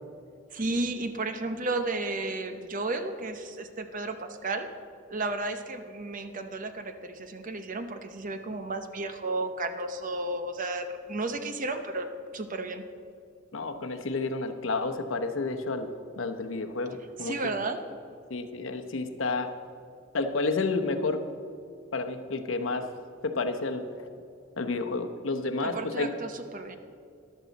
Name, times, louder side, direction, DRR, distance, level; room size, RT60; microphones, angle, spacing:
voice 1, 0.5-4.7 5.1-12.1 12.3-12.8 17.2-17.8 25.6-26.8, right 2 dB, 40° right, 8 dB, 0.8 m, -33 dB
voice 2, 13.5-15.9 16.2-17.5 18.3-19.5 20.1-21.2 21.9-22.8 23.2-23.8 24.6-26.1, left 3 dB, 75° left, 7 dB, 0.9 m, -30 dB
13.5 x 11.5 x 4.1 m, 2.5 s
head